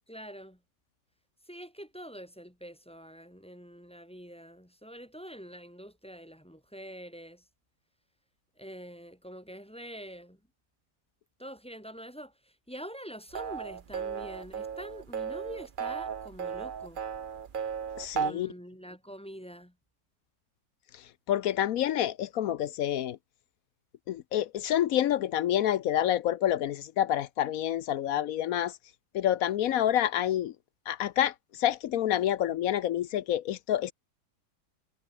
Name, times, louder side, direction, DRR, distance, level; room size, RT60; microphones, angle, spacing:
voice 1, 0.1-0.6 1.5-7.4 8.6-10.4 11.4-17.0 18.2-19.7, equal, 5° left, 1.7 m, -45 dB
sound 1, 13.3-18.3, right 7 dB, 45° right, 0.7 m, -35 dB
voice 2, 18.0-18.5 21.3-23.2 24.1-28.7 29.1-30.5 30.9-31.3 31.6-33.9, left 11 dB, 65° left, 1.0 m, -28 dB
omnidirectional pair, 1.8 m